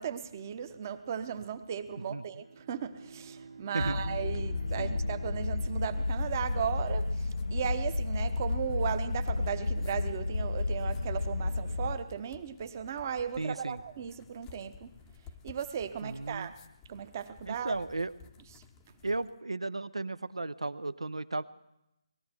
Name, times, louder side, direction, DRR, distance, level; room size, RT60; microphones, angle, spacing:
voice 1, 0.0-14.9 15.4-16.5 16.9-17.7, right 8 dB, 30° right, 11 dB, 0.9 m, -36 dB
Bowed string instrument, 2.3-6.9, right 4 dB, 50° right, 1.4 m, -51 dB
voice 2, 3.7-4.1 4.8-5.0 13.4-13.8 16.0-16.5 17.5-18.1 19.0-21.4, right 2 dB, 75° right, 16 dB, 0.7 m, -35 dB
sound 1, 3.8-12.0, left 3 dB, 70° left, 0.7 m, -32 dB
sound 2, 5.9-19.4, left 7 dB, 15° left, 0.7 m, -55 dB
20.0 x 14.0 x 4.5 m, 0.89 s
figure-of-eight pair, 145°, 3 cm